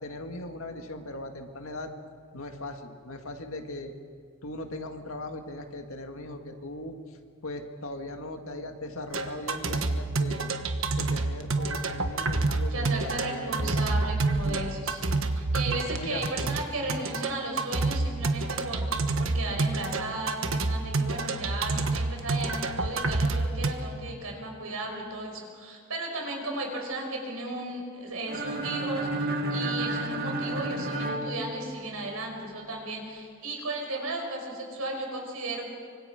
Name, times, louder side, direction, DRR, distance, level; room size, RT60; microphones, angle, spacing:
voice 1, 0.0-1.9 2.3-3.9 4.4-7.0 7.4-10.5 11.0-13.8 14.4-14.7 16.0-16.2, left 2 dB, 75° left, 4 dB, 2.0 m, -39 dB
sound 1, 9.1-23.7, right 3 dB, 70° right, 1.3 m, -28 dB
voice 2, 12.7-35.6, right 2 dB, 90° right, 1 dB, 5.4 m, -35 dB
sound 2, 28.3-32.2, right 1 dB, 45° right, 2.0 m, -31 dB
25.0 x 24.5 x 5.1 m, 2.2 s
head